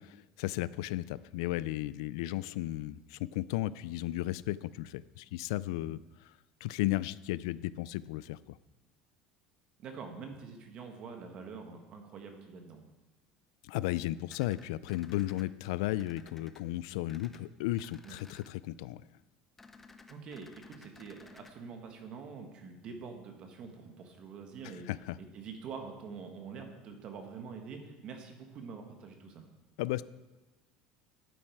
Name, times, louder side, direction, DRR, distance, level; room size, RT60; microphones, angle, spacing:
voice 1, 0.0-6.0 6.2-6.3 6.6-8.6 13.6-19.0 24.9-25.2 29.8-30.0, left 16 dB, 90° left, 18 dB, 0.4 m, -34 dB
voice 2, 9.8-12.8 18.0-18.2 20.1-24.9 25.2-29.4, right 5 dB, 35° right, 5 dB, 1.5 m, -45 dB
sound 1, 14.3-15.4 16.0-16.6 17.1-17.4 17.7-18.5 19.6-21.5, left 3 dB, 10° left, 0.6 m, -55 dB
11.0 x 8.8 x 4.7 m, 1.2 s
cardioid pair, 170°, 3 cm